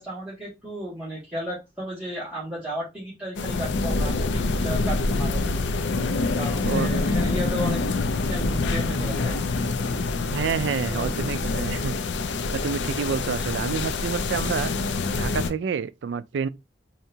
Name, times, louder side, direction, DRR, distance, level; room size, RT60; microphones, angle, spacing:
voice 1, 0.0-5.7 6.4-7.8 8.1-9.5 10.9-11.2, equal, 5° right, 1.9 m, -34 dB
sound 1, 3.4-15.5, left 3 dB, 85° left, 0.4 m, -26 dB
voice 2, 10.3-12.0 12.5-14.7 15.2-16.5, right 6 dB, 85° right, 0.4 m, -28 dB
4.6 x 2.8 x 2.7 m
head